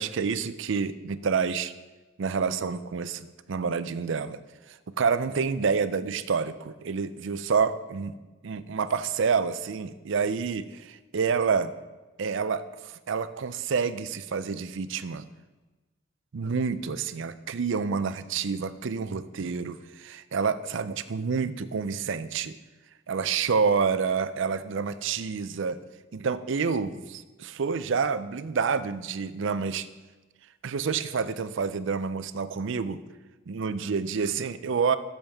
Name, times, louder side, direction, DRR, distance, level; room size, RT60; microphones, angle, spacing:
voice 1, 0.0-1.7 2.2-4.4 4.7-8.1 8.4-11.7 12.2-15.2 16.3-22.6 23.1-25.8 26.1-29.9 30.6-33.0 33.5-35.0, right 5 dB, 65° right, 13 dB, 0.5 m, -28 dB
14.0 x 7.1 x 3.5 m, 1.2 s
head